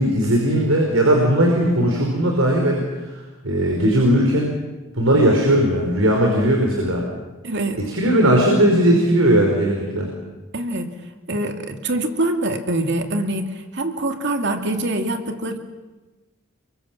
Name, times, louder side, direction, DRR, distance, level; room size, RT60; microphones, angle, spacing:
voice 1, 0.0-2.8 3.4-4.5 4.9-7.0 7.9-10.1, right 1 dB, 85° right, 1 dB, 5.0 m, -18 dB
voice 2, 7.4-7.8 10.5-10.9 11.3-15.6, right 1 dB, 60° right, 5 dB, 2.6 m, -24 dB
30.0 x 24.0 x 7.5 m, 1.2 s
head